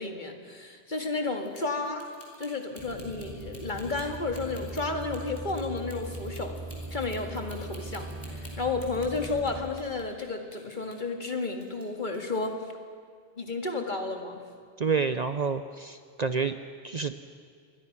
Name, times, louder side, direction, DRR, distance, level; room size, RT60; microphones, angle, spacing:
voice 1, 0.0-2.1 2.4-6.5 6.9-12.6 13.4-14.4, left 3 dB, 45° left, 4 dB, 2.2 m, -32 dB
sound 1, 1.4-10.2 10.5-11.9 12.1-12.4, left 1 dB, 20° left, 4.8 m, -52 dB
sound 2, 2.8-9.6, right 2 dB, 10° right, 7.6 m, -40 dB
voice 2, 14.8-16.6 16.8-17.1, right 5 dB, 45° right, 10 dB, 0.8 m, -28 dB
27.5 x 22.5 x 6.0 m, 2.1 s
omnidirectional pair, 1.1 m